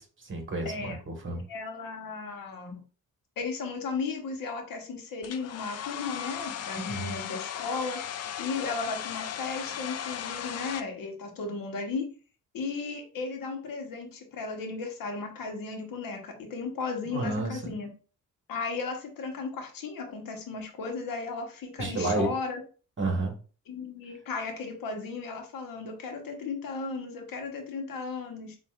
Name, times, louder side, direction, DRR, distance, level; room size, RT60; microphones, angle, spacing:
voice 1, 0.0-1.4 6.8-7.2 17.1-17.8 21.8-22.3 23.0-23.4, right 2 dB, 35° right, 2 dB, 1.5 m, -31 dB
voice 2, 0.6-1.0 1.2-2.8 3.4-8.0 8.4-12.1 12.5-17.9 18.5-22.6 23.7-28.6, left 4 dB, 90° left, 3 dB, 1.1 m, -35 dB
Domestic sounds home sounds, 5.2-10.8, left 9 dB, 50° left, 0.4 m, -37 dB
7.0 x 2.5 x 2.4 m, 0.38 s
cardioid pair, 110°, 33 cm